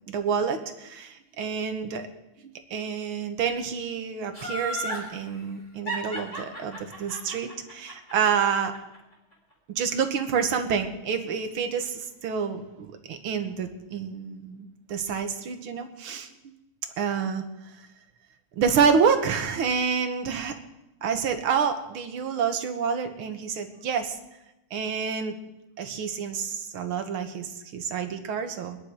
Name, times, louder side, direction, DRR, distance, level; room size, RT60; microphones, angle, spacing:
voice 1, 0.1-2.1 2.7-8.7 9.7-16.3 17.0-17.4 18.6-20.6 21.0-24.2 24.7-25.4 25.8-28.8, right 6 dB, 75° right, 7 dB, 2.1 m, -28 dB
Laughter, 4.3-5.1 5.9-9.0 9.3-9.4, right 1 dB, 15° left, 4.0 m, -33 dB
22.5 x 10.5 x 4.9 m, 0.96 s
omnidirectional pair, 2.4 m